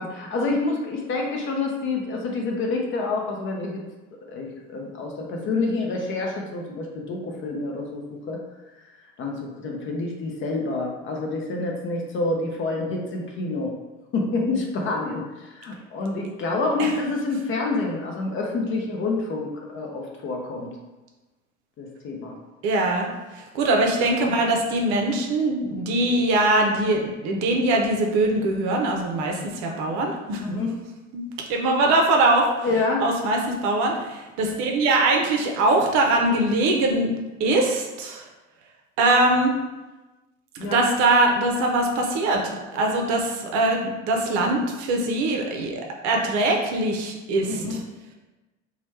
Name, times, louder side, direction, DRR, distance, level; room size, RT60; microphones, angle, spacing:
voice 1, 0.0-3.8 4.3-8.4 8.7-8.9 9.2-13.7 14.1-20.7 21.8-22.3 30.4-30.7 32.6-33.1 40.6-40.8 47.5-47.8, left 3 dB, 30° left, 0 dB, 0.6 m, -27 dB
voice 2, 22.6-23.1 23.5-30.4 31.1-31.2 31.5-32.5 33.0-38.2 39.0-39.5 40.5-47.6, right 2 dB, 50° right, 1 dB, 0.7 m, -22 dB
3.0 x 2.3 x 3.2 m, 1.1 s
figure-of-eight pair, 75°, 37 cm